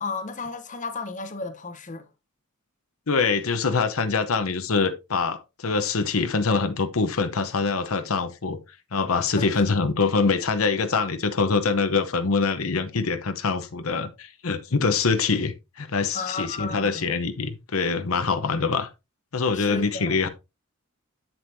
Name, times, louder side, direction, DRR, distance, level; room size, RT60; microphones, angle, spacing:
voice 1, 0.0-2.0 9.4-9.6 16.1-17.1 19.5-20.2, left 4 dB, 35° left, 1.0 m, -34 dB
voice 2, 3.1-8.6 8.9-18.9 19.3-20.3, left 4 dB, 80° left, 0.9 m, -24 dB
7.9 x 7.8 x 2.7 m
head